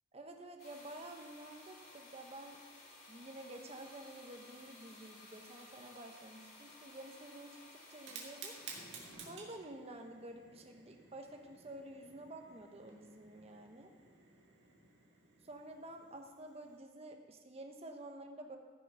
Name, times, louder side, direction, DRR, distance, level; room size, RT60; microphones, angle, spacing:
voice 1, 0.1-2.6 3.1-7.6 7.9-8.6 9.3-13.9 15.4-18.6, right 1 dB, 30° right, 4 dB, 1.0 m, -50 dB
sound 1, 0.6-9.1, left 2 dB, 50° left, 3.1 m, -57 dB
Fire, 7.9-16.8, right 4 dB, 60° right, 2.0 m, -54 dB
14.0 x 6.2 x 5.6 m, 1.5 s
head